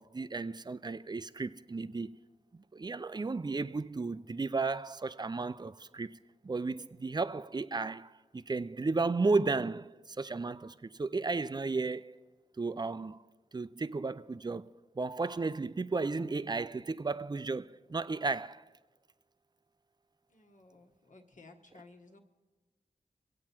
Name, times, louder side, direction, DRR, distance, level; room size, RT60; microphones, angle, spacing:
voice 1, 0.0-2.1 2.5-6.1 6.4-12.2 12.6-13.2 13.5-18.6, right 3 dB, 30° right, 0.4 m, -34 dB
voice 2, 20.3-22.2, left 3 dB, 55° left, 1.5 m, -57 dB
24.0 x 8.6 x 4.5 m
wide cardioid pair, 65°, 15 cm